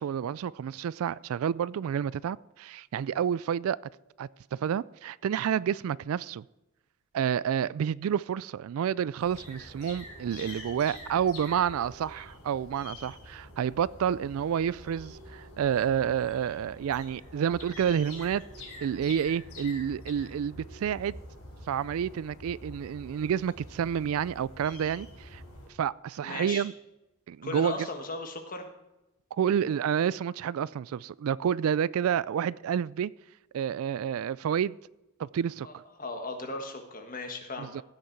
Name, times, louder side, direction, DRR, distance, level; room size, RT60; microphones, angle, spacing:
voice 1, 0.0-3.8 4.2-6.4 7.1-18.4 18.8-21.2 21.7-25.4 25.8-26.7 27.3-27.8 29.3-33.1 33.5-34.8 35.2-35.7 37.6-37.8, right 8 dB, 70° right, 0.3 m, -29 dB
sound 1, 9.2-25.7, left 1 dB, 85° left, 4.0 m, -46 dB
voice 2, 26.2-26.7 27.4-28.7 35.6-37.8, left 2 dB, 40° left, 1.5 m, -37 dB
15.5 x 6.6 x 4.6 m
head